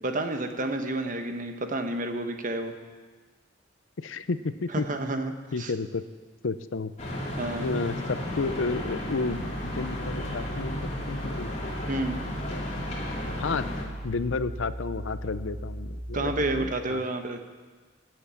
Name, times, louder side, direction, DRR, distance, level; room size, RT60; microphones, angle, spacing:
voice 1, 0.0-2.7 4.7-5.3 5.6-5.7 7.4-7.7 11.9-12.2 16.1-17.4, right 2 dB, 45° right, 6 dB, 1.1 m, -30 dB
voice 2, 4.0-4.8 5.5-6.0 6.4-6.9 7.6-11.5 13.4-13.7 14.0-17.0, left 4 dB, 90° left, 13 dB, 0.6 m, -31 dB
sound 1, 7.0-13.8, left 1 dB, 35° left, 2.5 m, -34 dB
sound 2, 8.2-16.7, right 1 dB, 65° right, 2.2 m, -39 dB
17.0 x 7.9 x 7.1 m, 1.4 s
head